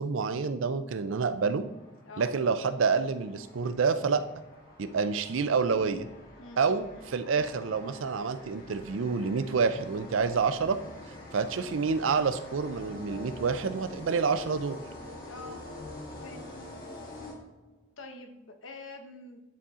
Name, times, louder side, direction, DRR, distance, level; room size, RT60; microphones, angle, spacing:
voice 1, 0.0-1.6 2.2-4.2 4.8-6.1 6.6-10.8 11.3-14.8, right 5 dB, 80° right, 11 dB, 0.5 m, -28 dB
sound 1, 1.0-17.8, left 1 dB, 45° left, 1.5 m, -46 dB
voice 2, 6.4-7.1 15.2-15.6 16.2-16.5 18.0-19.4, left 2 dB, 85° left, 6 dB, 0.9 m, -46 dB
10.0 x 4.1 x 3.7 m, 0.94 s
head